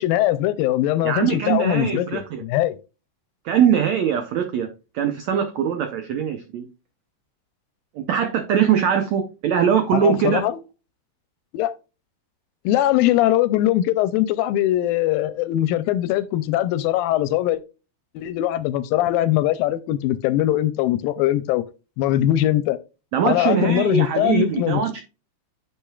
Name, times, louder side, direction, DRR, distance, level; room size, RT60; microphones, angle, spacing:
voice 1, 0.0-2.8 9.9-10.6 11.5-11.7 12.7-17.6 18.2-21.6 22.0-22.8 23.2-25.0, left 13 dB, 80° left, 2.1 m, -21 dB
voice 2, 1.0-2.4 3.4-4.7 4.9-6.7 8.0-10.4 23.1-25.0, right 8 dB, 90° right, 1.5 m, -21 dB
10.0 x 6.7 x 2.3 m
omnidirectional pair, 4.3 m